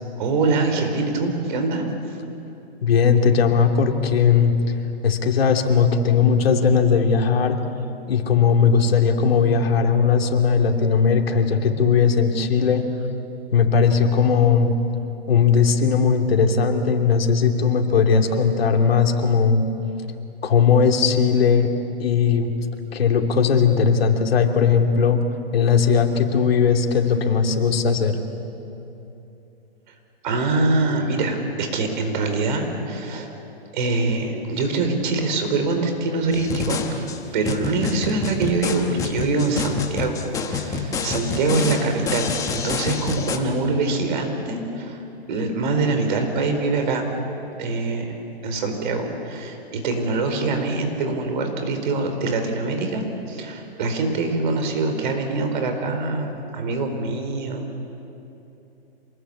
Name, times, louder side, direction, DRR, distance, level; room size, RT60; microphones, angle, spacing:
voice 1, 0.2-2.2 29.9-30.0 30.2-33.4 33.7-47.1 47.6-57.8, right 3 dB, 50° right, 5 dB, 4.5 m, -24 dB
voice 2, 2.8-4.7 5.0-7.6 8.1-12.8 13.5-14.7 15.3-19.6 20.4-21.7 22.0-22.5 22.9-25.2 25.5-28.2, left 6 dB, 70° left, 3 dB, 3.0 m, -18 dB
sound 1, 36.3-43.4, left 5 dB, 10° left, 1.2 m, -28 dB
27.0 x 20.5 x 8.7 m, 2.8 s
hypercardioid pair, 155°, 31 cm